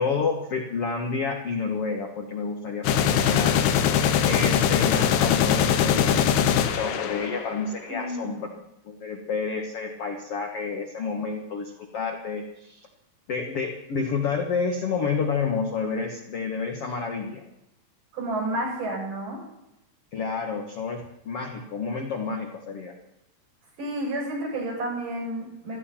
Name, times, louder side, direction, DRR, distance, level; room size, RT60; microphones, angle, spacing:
voice 1, 0.0-3.6 4.2-8.5 8.9-12.9 13.3-17.4 20.1-22.9, left 5 dB, 55° left, 3 dB, 1.7 m, -29 dB
sound 1, 2.8-7.7, left 8 dB, 85° left, 3.0 m, -22 dB
voice 2, 7.9-8.4 18.1-19.4 23.8-25.8, right 1 dB, 55° right, -5 dB, 9.4 m, -30 dB
16.5 x 13.5 x 5.8 m, 0.88 s
omnidirectional pair, 4.5 m